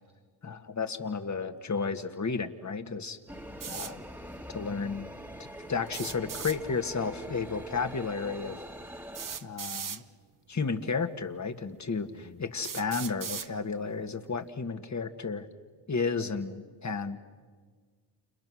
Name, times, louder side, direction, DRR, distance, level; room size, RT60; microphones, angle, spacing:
voice 1, 0.4-3.2 3.7-4.0 4.5-5.1 5.7-8.6 9.4-10.0 10.5-15.5 15.9-17.2, left 4 dB, 35° left, 8 dB, 2.0 m, -32 dB
sound 1, 3.3-9.4, equal, 5° right, 1.9 m, -43 dB
sound 2, 3.6-3.9 5.9-6.6 8.0-8.1 9.1-10.0 11.0-11.1 11.8-11.9 12.6-13.5, right 7 dB, 40° right, 1.2 m, -38 dB
29.5 x 28.0 x 6.4 m, 1.5 s
supercardioid pair, 55°, 48 cm